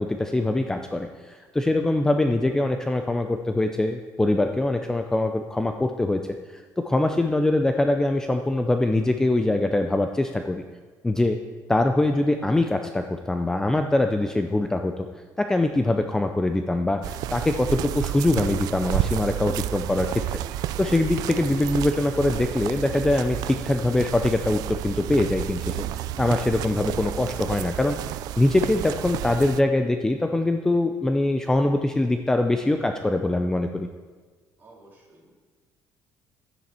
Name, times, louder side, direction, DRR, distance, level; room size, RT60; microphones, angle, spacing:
voice 1, 0.0-6.2 6.5-10.6 11.0-11.4 11.7-15.1 15.4-20.4 20.8-25.8 26.2-28.0 28.4-33.9, left 2 dB, 10° left, 5 dB, 0.4 m, -23 dB
sound 1, 17.0-29.6, right 13 dB, 75° right, 0.3 m, -31 dB
voice 2, 34.6-35.3, right 2 dB, 30° right, -4 dB, 3.0 m, -52 dB
12.5 x 9.3 x 4.3 m, 1.4 s
cardioid pair, 155°, 7 cm